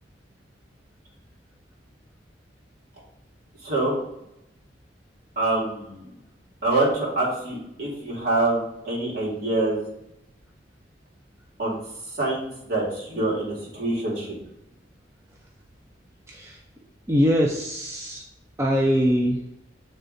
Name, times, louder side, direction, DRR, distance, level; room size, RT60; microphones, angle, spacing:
voice 1, 3.6-4.0 5.4-6.1 6.6-9.8 11.6-11.8 12.2-14.3, right 2 dB, 50° right, -6 dB, 2.2 m, -25 dB
voice 2, 16.3-16.6 17.1-18.2 18.6-19.4, equal, 15° right, -1 dB, 0.4 m, -22 dB
7.8 x 3.3 x 3.8 m, 0.84 s
head